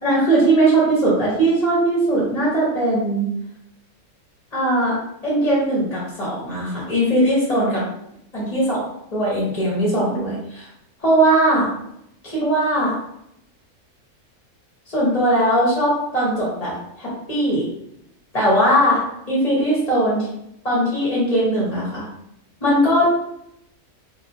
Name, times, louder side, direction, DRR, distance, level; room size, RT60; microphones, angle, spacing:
voice 1, 0.0-3.3 4.5-7.8 8.3-8.8 9.1-10.7 11.0-11.7 12.2-13.0 14.9-16.7 17.0-17.7 18.3-20.3 20.6-22.0 22.6-23.1, right 1 dB, 30° left, -6 dB, 1.0 m, -19 dB
3.6 x 2.7 x 2.7 m, 0.77 s
omnidirectional pair, 1.5 m